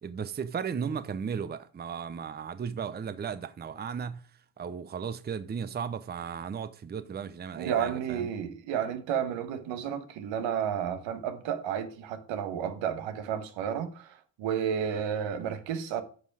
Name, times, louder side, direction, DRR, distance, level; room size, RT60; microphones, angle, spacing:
voice 1, 0.0-4.3 4.6-8.3, right 7 dB, 25° right, 0.6 m, -35 dB
voice 2, 7.6-16.0, right 8 dB, 80° right, 1.4 m, -32 dB
9.6 x 5.5 x 4.7 m
cardioid pair, 90°, 44 cm